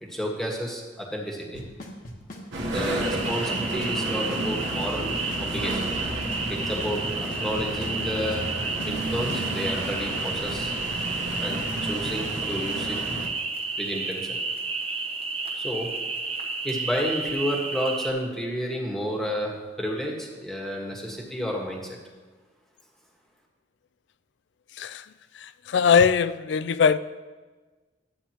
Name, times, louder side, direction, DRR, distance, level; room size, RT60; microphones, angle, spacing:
voice 1, 0.0-1.7 2.7-5.9 6.5-8.5 8.8-10.7 11.4-13.0 13.8-14.4 15.5-15.9 16.6-22.0, equal, ahead, -1 dB, 1.4 m, -31 dB
Drum kit / Snare drum / Bass drum, 1.5-9.5, left 1 dB, 50° left, 1.2 m, -39 dB
sound 1, 2.5-13.3, right 1 dB, 75° right, 1.2 m, -31 dB
sound 2, 3.0-18.1, right 3 dB, 35° right, 0.9 m, -32 dB
voice 2, 25.3-27.0, left 6 dB, 70° left, 14 dB, 0.4 m, -21 dB
12.5 x 8.5 x 2.9 m, 1.3 s
head